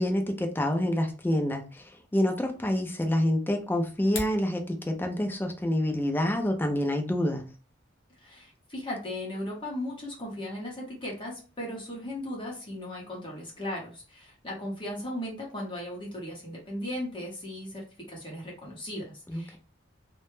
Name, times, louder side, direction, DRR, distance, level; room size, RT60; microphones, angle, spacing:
voice 1, 0.0-7.4 19.3-19.6, left 1 dB, 10° left, 4 dB, 0.3 m, -27 dB
sound 1, 3.9-4.5, left 3 dB, 80° left, 0.7 m, -37 dB
voice 2, 8.2-17.8 18.1-19.6, left 1 dB, 25° left, -3 dB, 0.8 m, -37 dB
2.1 x 2.0 x 3.0 m, 0.36 s
head